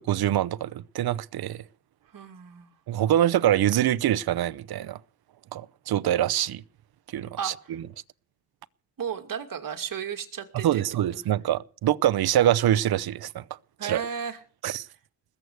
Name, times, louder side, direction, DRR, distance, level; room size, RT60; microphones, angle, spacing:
voice 1, 0.0-1.6 2.9-5.0 5.5-6.6 7.1-7.5 10.6-13.4 13.8-14.1 14.6-14.9, right 12 dB, 85° right, 0.7 m, -24 dB
voice 2, 2.1-2.7 7.4-7.8 9.0-10.8 13.8-14.4, right 7 dB, 65° right, 2.5 m, -34 dB
20.5 x 8.1 x 8.1 m
cardioid pair, 105°, 37 cm